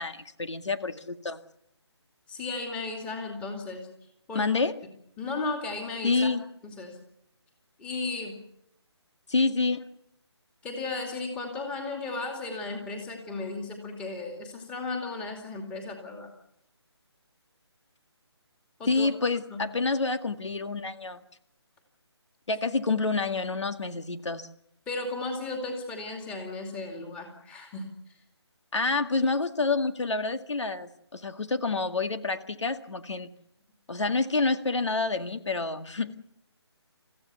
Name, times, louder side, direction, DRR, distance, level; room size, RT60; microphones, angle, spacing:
voice 1, 0.0-1.4 4.3-4.8 6.0-6.4 9.3-9.8 18.9-21.2 22.5-24.5 28.7-33.3 33.9-36.2, left 3 dB, 85° left, 9 dB, 1.9 m, -28 dB
voice 2, 2.3-3.9 4.3-4.5 5.2-6.3 6.6-7.0 7.8-8.4 10.6-16.3 18.8-19.1 19.5-19.6 24.9-27.9, left 3 dB, 5° left, 3 dB, 2.5 m, -35 dB
29.0 x 15.0 x 7.0 m, 0.80 s
hypercardioid pair, 165°, 15 cm